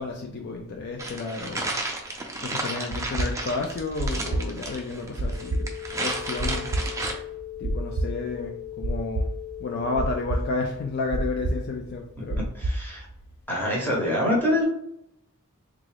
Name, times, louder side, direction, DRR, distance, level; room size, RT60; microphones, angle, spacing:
voice 1, 0.0-1.7 2.4-5.7 6.0-6.7 7.6-9.3 9.6-12.4, left 3 dB, 50° left, 2 dB, 0.3 m, -31 dB
sound 1, 1.0-7.1, right 2 dB, 15° right, 0.4 m, -33 dB
sound 2, 2.9-13.2, right 2 dB, 65° right, 0.6 m, -29 dB
sound 3, 5.2-10.2, left 14 dB, 70° left, 1.2 m, -39 dB
voice 2, 12.5-13.1 13.5-14.7, left 1 dB, 10° left, -3 dB, 0.9 m, -25 dB
3.6 x 2.4 x 3.3 m, 0.78 s
head